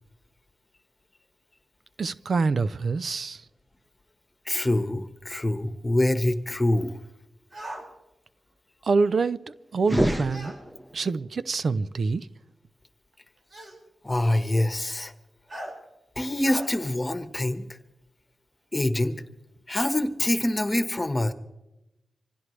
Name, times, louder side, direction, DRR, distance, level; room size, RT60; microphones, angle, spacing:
voice 1, 2.0-3.4 8.8-10.5 10.9-12.3, right 4 dB, 65° right, 0.6 m, -26 dB
voice 2, 4.5-7.0 14.0-15.1 16.2-17.7 18.7-19.2 19.7-21.3, left 1 dB, 25° left, 1.4 m, -25 dB
sound 1, 7.5-7.9 10.3-10.6 11.8-11.9 13.5-13.8 15.5-15.7 16.4-16.7, right 1 dB, 50° right, 5.6 m, -38 dB
sound 2, 9.8-11.1, equal, 15° right, 1.2 m, -27 dB
25.5 x 16.0 x 3.3 m
cardioid pair, 60°, 0 cm